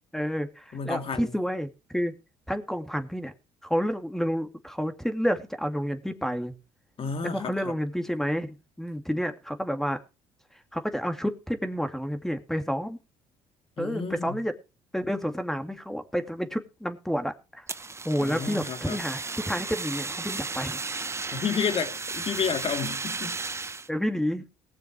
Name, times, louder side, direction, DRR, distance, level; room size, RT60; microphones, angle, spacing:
voice 1, 0.1-2.1 2.5-3.3 3.6-6.5 7.2-10.0 10.7-13.0 13.8-14.5 14.9-17.7 18.0-20.8 23.9-24.4, equal, 5° left, 2.3 m, -30 dB
voice 2, 0.7-1.3 7.0-7.7 13.8-14.4 18.2-19.0 21.3-23.4, left 6 dB, 45° left, 2.1 m, -31 dB
Fire, 17.7-23.9, right 4 dB, 20° right, 0.8 m, -34 dB
19.0 x 6.9 x 4.8 m
hypercardioid pair, 65°, 13 cm